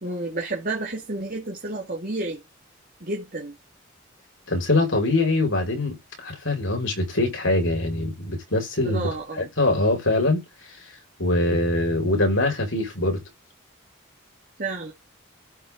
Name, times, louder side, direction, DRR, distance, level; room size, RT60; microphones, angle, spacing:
voice 1, 0.0-2.4 3.0-3.5 8.8-9.5 14.6-14.9, right 2 dB, 40° right, 2.1 m, -30 dB
voice 2, 4.5-10.4 11.2-13.2, left 2 dB, 70° left, 5.8 m, -23 dB
14.0 x 6.3 x 3.9 m
head